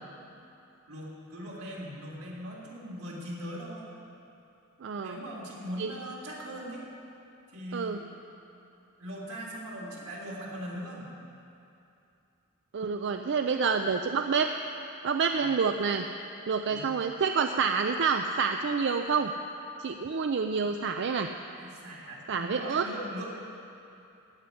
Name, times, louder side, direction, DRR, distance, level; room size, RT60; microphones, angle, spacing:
voice 1, 0.9-3.9 5.0-6.8 7.5-8.0 9.0-11.0 15.3-15.5 16.7-16.9 21.6-23.3, equal, 85° right, -4 dB, 3.2 m, -40 dB
voice 2, 4.8-5.2 5.8-5.9 7.7-8.0 12.7-14.5 15.0-16.1 16.5-19.3 19.8-21.3 22.3-22.8, right 5 dB, 55° right, 6 dB, 0.4 m, -28 dB
16.0 x 5.7 x 9.7 m, 2.7 s
head